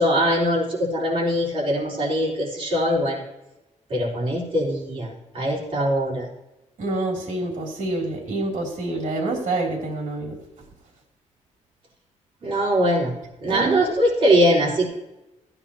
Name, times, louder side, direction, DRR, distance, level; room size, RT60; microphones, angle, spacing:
voice 1, 0.0-3.2 3.9-6.3 12.4-13.1 13.4-14.9, equal, 45° right, -6 dB, 4.5 m, -22 dB
voice 2, 6.8-10.4 13.5-13.9, right 2 dB, 70° right, 0 dB, 3.0 m, -27 dB
16.0 x 9.8 x 2.9 m, 0.98 s
wide cardioid pair, 155°, 13 cm